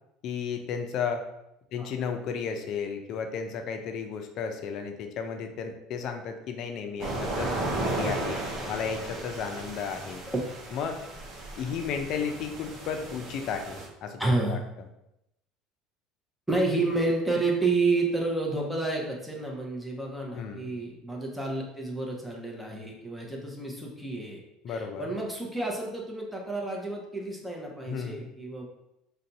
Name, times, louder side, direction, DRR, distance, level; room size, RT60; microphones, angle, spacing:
voice 1, 0.2-1.2 1.7-7.5 7.8-8.4 8.7-10.2 10.7-11.0 11.6-14.6 20.3-20.7 24.6-25.1 27.9-28.3, left 6 dB, 55° left, 5 dB, 0.5 m, -33 dB
sound 1, 7.0-13.9, right 2 dB, 50° right, 0.8 m, -35 dB
voice 2, 14.2-14.6 16.5-24.4 24.7-28.7, right 2 dB, 5° right, -1 dB, 0.8 m, -30 dB
2.6 x 2.3 x 4.0 m, 0.84 s
supercardioid pair, 90°, 0 cm